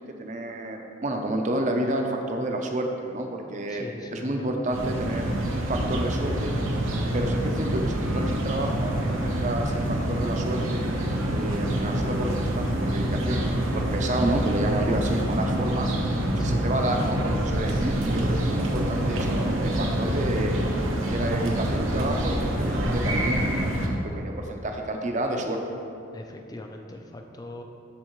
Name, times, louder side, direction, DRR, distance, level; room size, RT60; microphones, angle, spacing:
voice 1, 0.0-3.8 4.1-6.9 7.1-10.8 11.3-15.9 16.4-20.6 21.1-25.6, right 1 dB, 35° right, 3 dB, 0.6 m, -30 dB
voice 2, 3.7-4.8 16.4-16.6 26.1-27.6, left 1 dB, 20° left, 4 dB, 0.4 m, -41 dB
sound 1, 4.7-23.9, right 1 dB, 85° right, 0.9 m, -26 dB
13.0 x 4.5 x 3.1 m, 2.6 s
head